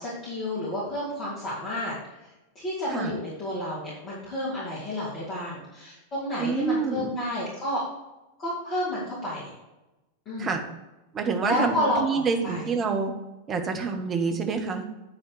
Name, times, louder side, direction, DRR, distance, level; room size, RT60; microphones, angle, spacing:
voice 1, 0.0-1.9 2.5-7.8 8.4-9.5 10.3-10.6 11.4-12.7, left 1 dB, 30° left, -8 dB, 3.0 m, -30 dB
voice 2, 6.4-7.1 10.4-10.6 11.1-13.1 13.5-14.9, right 5 dB, 25° right, 4 dB, 1.2 m, -27 dB
9.8 x 4.2 x 6.5 m, 1.0 s
figure-of-eight pair, 90°, 0 cm